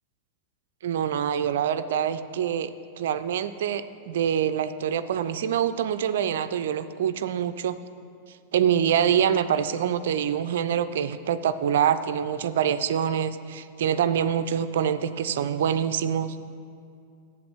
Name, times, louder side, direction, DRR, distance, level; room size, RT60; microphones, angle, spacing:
voice 1, 0.8-2.7 3.0-7.8 8.5-16.4, right 9 dB, 60° right, 12 dB, 0.4 m, -25 dB
7.7 x 7.7 x 7.4 m, 2.4 s
figure-of-eight pair, 90°, 0 cm